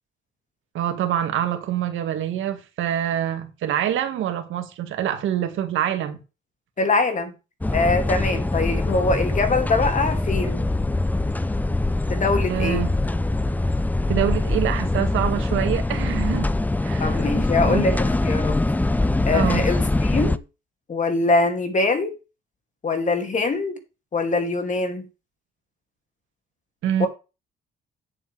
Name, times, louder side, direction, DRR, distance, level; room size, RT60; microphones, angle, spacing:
voice 1, 0.7-6.2 12.5-13.0 14.1-16.5 16.8-17.2 17.7-17.8 19.3-19.6 26.8-27.1, right 10 dB, 80° right, 1.9 m, -25 dB
voice 2, 6.8-7.3 7.7-10.7 12.1-12.9 17.0-18.6 19.3-20.4 20.9-22.1 22.8-23.8 24.1-25.1 27.0-27.1, left 3 dB, 40° left, 2.5 m, -23 dB
sound 1, 7.6-20.4, left 2 dB, 10° left, 0.5 m, -23 dB
9.0 x 7.9 x 3.4 m
cardioid pair, 90°, 20 cm